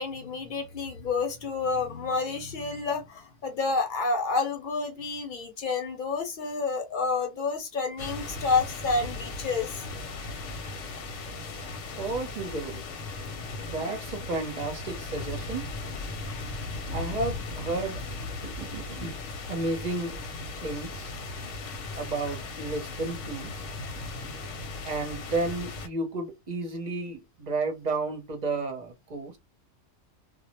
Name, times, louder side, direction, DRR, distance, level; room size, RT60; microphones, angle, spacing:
voice 1, 0.0-9.7, left 4 dB, 50° left, 0.8 m, -29 dB
sound 1, 8.0-25.9, left 3 dB, 80° left, 1.0 m, -37 dB
voice 2, 12.0-12.9 13.6-15.7 16.9-18.0 18.4-19.2 19.5-20.1 20.6-21.1 21.9-23.5 24.8-29.4, right 3 dB, 40° right, 0.7 m, -32 dB
2.2 x 2.0 x 2.9 m
omnidirectional pair, 1.3 m